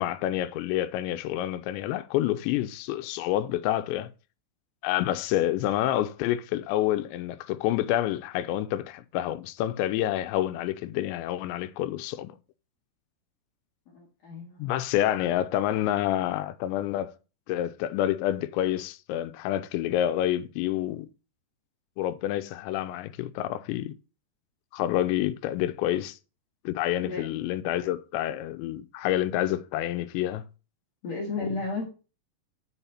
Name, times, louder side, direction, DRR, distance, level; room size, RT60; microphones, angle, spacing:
voice 1, 0.0-4.1 4.8-12.4 14.6-17.1 17.5-21.1 22.0-23.9 24.7-26.2 26.7-30.4 31.4-31.5, left 13 dB, 85° left, 2.8 m, -28 dB
voice 2, 13.9-14.7 27.0-27.3 31.0-31.8, left 3 dB, 50° left, 2.2 m, -33 dB
6.9 x 4.8 x 5.7 m
omnidirectional pair, 5.1 m